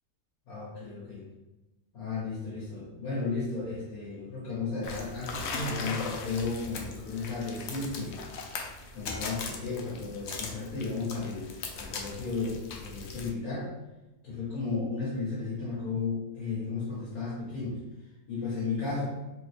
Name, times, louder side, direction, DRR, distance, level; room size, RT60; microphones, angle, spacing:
voice 1, 0.5-1.2 1.9-8.2 8.9-13.7 14.2-17.8 18.3-19.1, left 4 dB, 90° left, -8 dB, 1.5 m, -34 dB
sound 1, 4.8-13.3, left 4 dB, 65° left, 0.7 m, -39 dB
3.3 x 2.8 x 3.2 m, 1.1 s
omnidirectional pair, 1.5 m